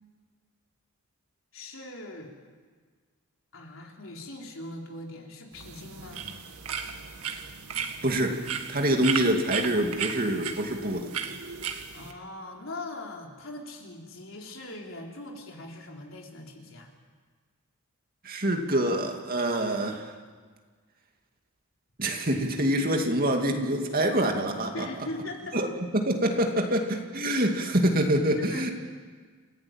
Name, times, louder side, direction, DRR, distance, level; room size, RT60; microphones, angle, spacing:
voice 1, 1.5-2.3 3.5-6.3 11.9-16.9 24.7-25.5 26.4-26.5 28.4-28.7, left 2 dB, 60° left, 0 dB, 4.0 m, -41 dB
sound 1, 5.5-12.1, right 7 dB, 85° right, 1.9 m, -35 dB
voice 2, 8.0-8.4 8.7-11.1 18.2-20.1 22.0-24.9 25.5-25.7 25.9-28.7, right 1 dB, 40° right, 3 dB, 2.5 m, -25 dB
29.0 x 16.5 x 9.0 m, 1.5 s
head